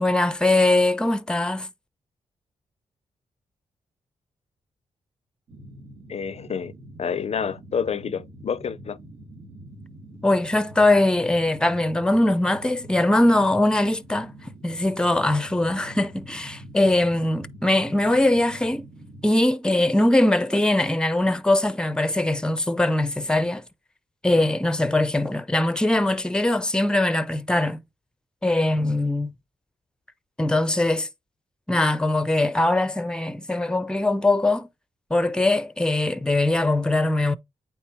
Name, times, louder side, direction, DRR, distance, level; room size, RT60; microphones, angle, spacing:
voice 1, 0.0-1.7 10.2-14.3 14.6-18.9 19.2-23.6 24.2-27.8 28.4-29.3 30.4-31.1 31.7-34.7 35.1-37.4, left 1 dB, 5° left, 0.6 m, -21 dB
sound 1, 5.5-19.3, right 1 dB, 60° right, 2.1 m, -45 dB
voice 2, 6.1-6.7 7.0-9.0, left 6 dB, 55° left, 0.5 m, -28 dB
8.6 x 3.6 x 3.0 m
cardioid pair, 55°, 13 cm